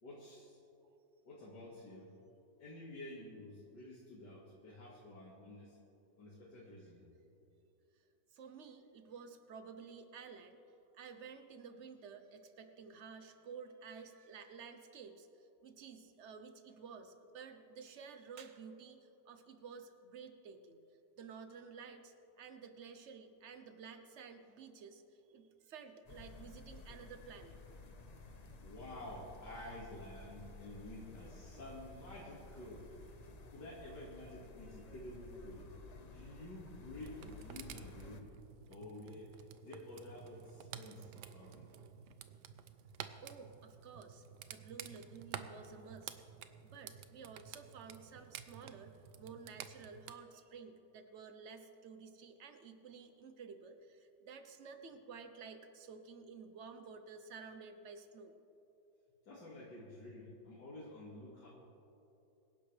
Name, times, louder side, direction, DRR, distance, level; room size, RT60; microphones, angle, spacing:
voice 1, 0.0-0.6 1.2-2.1 2.6-5.8 6.2-7.0 28.1-28.3 28.6-33.2 33.5-35.8 36.0-38.3 38.7-41.7 59.3-61.5, left 1 dB, 85° left, -8 dB, 2.7 m, -50 dB
voice 2, 8.3-10.6 10.9-20.8 21.2-25.0 25.3-27.6 43.2-46.1 46.6-58.3, right 5 dB, 50° right, 7 dB, 1.1 m, -52 dB
sound 1, 26.1-38.2, left 2 dB, 45° left, 0.5 m, -54 dB
sound 2, 36.9-50.1, right 9 dB, 80° right, 1.3 m, -51 dB
24.5 x 11.0 x 3.4 m, 2.9 s
omnidirectional pair, 1.8 m